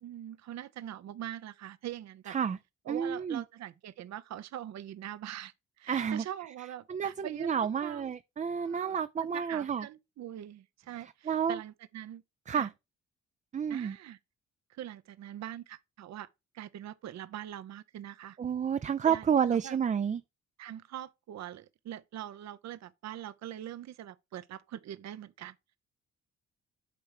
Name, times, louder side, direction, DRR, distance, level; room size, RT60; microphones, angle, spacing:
voice 1, 0.0-2.4 2.9-8.1 8.6-12.2 12.5-12.7 13.7-14.2 14.7-16.3 16.5-18.4 19.0-19.8 20.6-25.8, right 12 dB, 60° right, 0.7 m, -43 dB
voice 2, 2.3-2.6 2.9-3.4 5.9-6.2 6.9-9.8 11.3-11.6 12.5-12.7 13.5-14.0 18.4-20.2, right 7 dB, 25° right, 0.4 m, -30 dB
8.3 x 3.2 x 6.5 m
cardioid pair, 90°, 30 cm